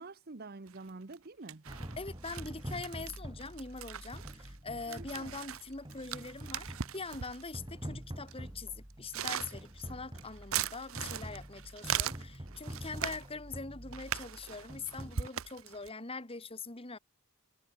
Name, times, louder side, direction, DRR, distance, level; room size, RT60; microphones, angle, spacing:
voice 1, 0.0-1.6 4.9-5.3, right 3 dB, 45° right, 1.0 m, -47 dB
sound 1, 0.7-1.2 1.5-7.6 8.3-8.4 8.9-13.3 13.9-15.9, right 9 dB, 70° right, 0.9 m, -40 dB
sound 2, 1.7-15.3, equal, 20° right, 2.6 m, -46 dB
voice 2, 2.0-17.0, left 3 dB, 25° left, 1.9 m, -43 dB
head